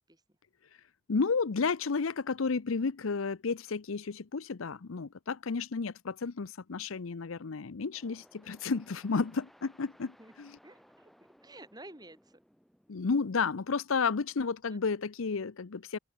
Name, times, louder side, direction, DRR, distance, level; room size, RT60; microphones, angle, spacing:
voice 1, 1.1-10.6 12.9-16.0, left 4 dB, 85° left, 0.7 m, -32 dB
sound 1, 7.9-15.4, equal, ahead, 2.4 m, -63 dB
voice 2, 10.6-12.4 14.7-14.9, right 1 dB, 20° right, 3.3 m, -52 dB
open air
head